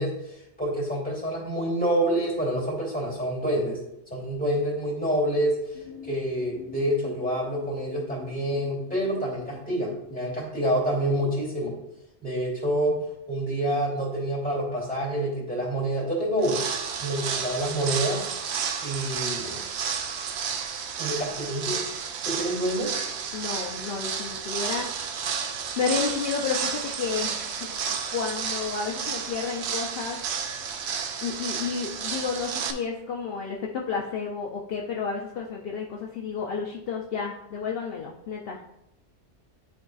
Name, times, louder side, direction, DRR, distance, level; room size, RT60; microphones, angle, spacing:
voice 1, 0.0-3.8 4.1-11.7 12.2-13.0 13.3-16.6 17.0-18.3 18.8-19.6 21.0-21.8 22.2-22.9, right 1 dB, 5° left, -6 dB, 2.6 m, -27 dB
sound 1, 5.7-11.0, left 7 dB, 35° left, 1.2 m, -47 dB
sound 2, 16.4-32.7, right 7 dB, 75° right, 0.9 m, -31 dB
voice 2, 23.3-24.9 25.8-27.8 28.1-30.2 31.2-38.8, left 5 dB, 60° left, -1 dB, 0.8 m, -31 dB
10.5 x 4.7 x 2.4 m, 0.84 s
omnidirectional pair, 1.2 m